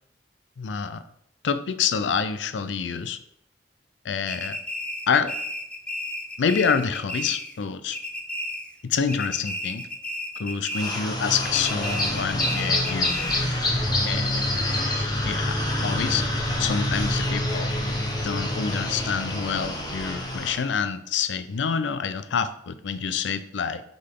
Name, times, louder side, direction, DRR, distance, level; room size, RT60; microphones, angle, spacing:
voice 1, 0.6-1.0 1.4-3.2 4.0-4.6 5.1-5.3 6.4-8.0 8.8-9.9 10.4-13.1 14.0-14.4 15.0-15.6 15.8-16.3 16.6-17.7 18.2-23.8, left 6 dB, 75° left, 12 dB, 0.4 m, -27 dB
sound 1, 4.3-7.6 7.9-8.8 9.1-11.1 11.4-13.6, left 1 dB, 5° left, 0.6 m, -33 dB
sound 2, 10.7-20.6, left 1 dB, 25° left, 1.1 m, -26 dB
6.5 x 4.0 x 3.7 m, 0.74 s
head